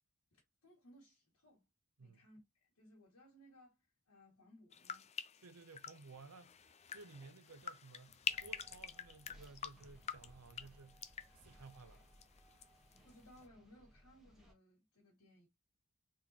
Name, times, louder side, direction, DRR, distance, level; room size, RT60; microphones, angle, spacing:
voice 1, 0.3-1.6 2.0-5.1 13.0-15.5, equal, 85° left, 2.2 m, -63 dB
sound 1, 4.7-12.7 12.9-13.4, left 8 dB, 30° left, 0.4 m, -47 dB
voice 2, 5.4-6.7 6.9-11.1 11.4-12.0, right 4 dB, 75° right, 0.7 m, -57 dB
sound 2, 8.3-14.5, equal, ahead, 1.3 m, -63 dB
4.3 x 3.7 x 3.0 m
head